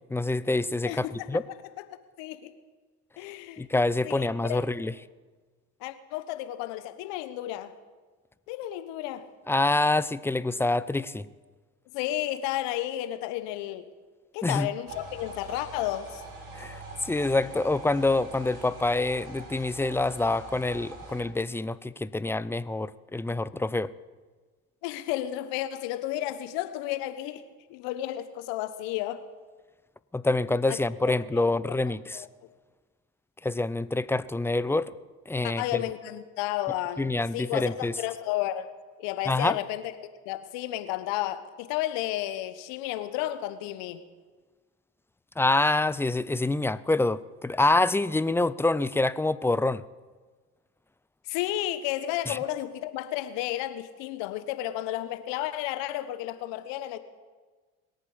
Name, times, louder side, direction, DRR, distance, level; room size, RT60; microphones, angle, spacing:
voice 1, 0.1-1.4 3.6-4.9 9.5-11.3 14.4-14.7 16.5-23.9 30.1-32.3 33.4-34.9 35.3-35.8 37.0-37.9 39.3-39.6 45.4-49.8 52.3-52.4, left 2 dB, 5° left, 17 dB, 0.4 m, -26 dB
voice 2, 0.8-1.3 2.2-2.5 3.2-3.6 4.0-4.6 5.8-7.7 8.5-9.3 11.9-13.9 14.3-16.2 24.8-27.4 27.7-29.2 30.7-30.8 31.1-31.5 32.1-32.3 35.4-38.7 39.0-44.0 51.2-57.0, left 14 dB, 70° left, 12 dB, 1.3 m, -32 dB
sound 1, 14.9-21.2, right 2 dB, 75° right, 4.3 m, -43 dB
21.5 x 8.9 x 7.2 m, 1.4 s
hypercardioid pair, 65°, 46 cm